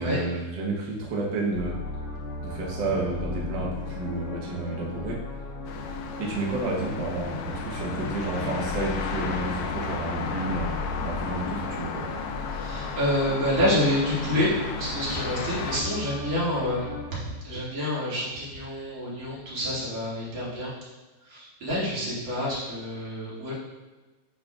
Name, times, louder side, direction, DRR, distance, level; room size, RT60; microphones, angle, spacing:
voice 1, 0.0-1.8 2.4-5.2 6.2-10.7 11.0-12.0, right 2 dB, 55° right, -2 dB, 1.2 m, -30 dB
sound 1, 1.5-17.0, left 2 dB, 55° left, 1.4 m, -36 dB
sound 2, 5.7-15.8, left 5 dB, 80° left, 1.8 m, -34 dB
voice 2, 12.5-16.8 17.4-20.7 21.2-23.5, left 1 dB, 40° right, -9 dB, 2.8 m, -28 dB
8.4 x 5.7 x 2.4 m, 1.2 s
omnidirectional pair, 3.4 m